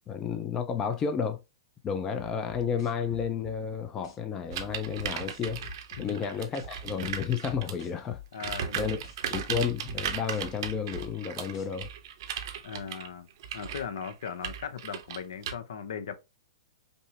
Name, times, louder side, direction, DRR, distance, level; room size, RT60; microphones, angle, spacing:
voice 1, 0.1-1.4 1.8-5.6 6.0-8.2 8.5-9.0 9.3-11.9, left 7 dB, 25° left, 0.5 m, -31 dB
sound 1, 2.2-3.6 4.0-4.2 4.7-6.1 6.5-6.7 7.0-8.6 9.0-9.2 9.7-11.1 11.5-11.7, left 9 dB, 50° left, 1.6 m, -47 dB
sound 2, 4.5-7.9 8.3-15.5, right 8 dB, 60° right, 0.7 m, -37 dB
voice 2, 8.3-9.0 12.6-13.3 13.5-16.1, left 7 dB, 70° left, 0.7 m, -38 dB
5.3 x 2.1 x 2.8 m
hypercardioid pair, 125°, 3 cm